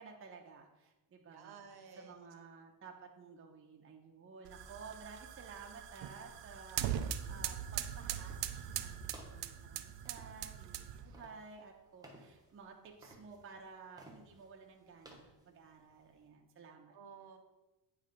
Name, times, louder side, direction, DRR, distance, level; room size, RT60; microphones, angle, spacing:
voice 1, 0.0-1.6 2.0-17.0, right 5 dB, 30° right, 1 dB, 0.7 m, -54 dB
voice 2, 1.3-2.1 16.9-17.4, right 6 dB, 60° right, 5 dB, 1.0 m, -53 dB
sound 1, 4.4-11.1, right 10 dB, 80° right, 0.5 m, -41 dB
sound 2, 8.1-16.3, right 1 dB, 10° right, 1.0 m, -61 dB
9.0 x 3.2 x 5.1 m, 1.1 s
cardioid pair, 155°, 42 cm